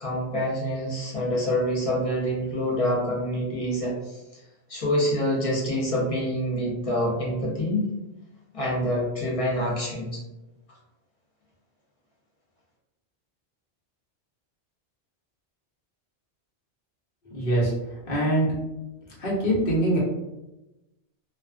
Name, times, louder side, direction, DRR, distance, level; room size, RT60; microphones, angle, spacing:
voice 1, 0.0-3.9 4.7-7.9 8.5-10.2, equal, 40° left, -4 dB, 0.6 m, -26 dB
voice 2, 17.3-17.7 18.1-18.5 19.2-20.0, right 1 dB, 55° left, -5 dB, 1.0 m, -23 dB
2.3 x 2.2 x 2.3 m, 0.99 s
omnidirectional pair, 1.2 m